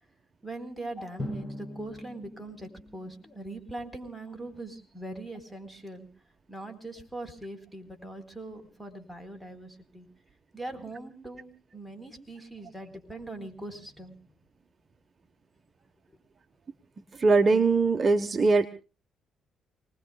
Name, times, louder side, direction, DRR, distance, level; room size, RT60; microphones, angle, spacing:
voice 1, 0.4-6.1 6.5-10.1 10.5-14.2, right 2 dB, 5° left, 7 dB, 4.2 m, -41 dB
Drum, 1.2-3.8, left 1 dB, 20° left, 4.2 m, -41 dB
voice 2, 17.2-18.7, right 3 dB, 35° right, 6 dB, 1.2 m, -21 dB
29.0 x 20.0 x 2.3 m, 0.36 s
cardioid pair, 90°, 0 cm